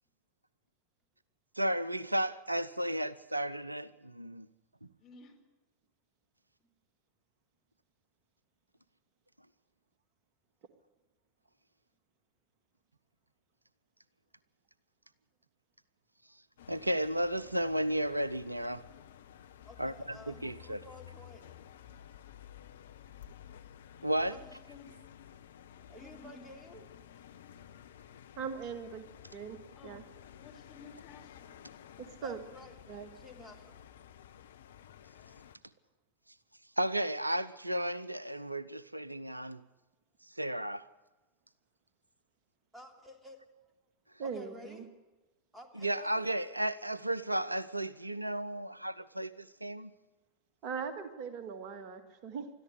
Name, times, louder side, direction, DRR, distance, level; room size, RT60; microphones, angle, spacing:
voice 1, 1.6-4.5 16.7-18.8 19.8-20.8 24.0-24.4 36.8-39.6 40.4-40.9 45.8-49.9, right 1 dB, 85° right, 0.6 m, -33 dB
voice 2, 5.0-5.4 24.4-24.9 25.8-26.4 29.7-30.1 30.4-31.6, left 4 dB, 25° left, 4.4 m, -55 dB
sound 1, 16.6-35.6, left 10 dB, 60° left, 1.0 m, -53 dB
voice 3, 19.6-21.5 24.2-24.6 25.9-26.9 32.2-33.8 42.7-43.4 44.2-45.1 45.5-46.3, left 1 dB, 5° right, 3.1 m, -52 dB
voice 4, 28.4-29.6 29.8-30.0 32.0-32.4 32.9-33.1 44.2-44.9 50.6-52.5, right 6 dB, 40° right, 2.1 m, -40 dB
21.5 x 14.0 x 9.8 m
figure-of-eight pair, 90°, 0 cm